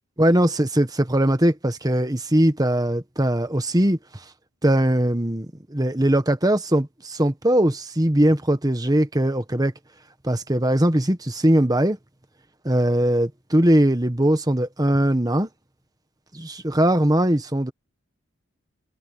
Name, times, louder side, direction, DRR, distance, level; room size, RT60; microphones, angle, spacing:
voice 1, 0.2-4.2 4.6-9.7 10.2-12.0 12.6-15.5 16.3-17.7, right 1 dB, 15° right, 1.3 m, -20 dB
head